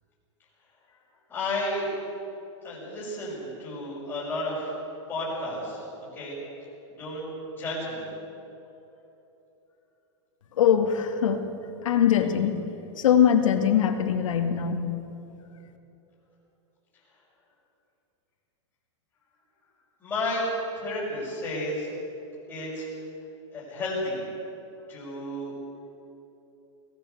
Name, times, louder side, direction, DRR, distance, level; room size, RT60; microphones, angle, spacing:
voice 1, 1.3-1.9 2.6-4.7 5.1-5.8 6.1-6.3 7.0-7.3 7.6-8.1 20.0-22.0 22.5-22.9 23.5-24.2 24.9-25.5, left 1 dB, 10° left, -12 dB, 6.1 m, -32 dB
voice 2, 10.6-11.4 11.8-12.5 13.0-14.8, left 9 dB, 85° left, 5 dB, 2.5 m, -22 dB
22.5 x 17.5 x 8.2 m, 3.0 s
supercardioid pair, 175°, 16 cm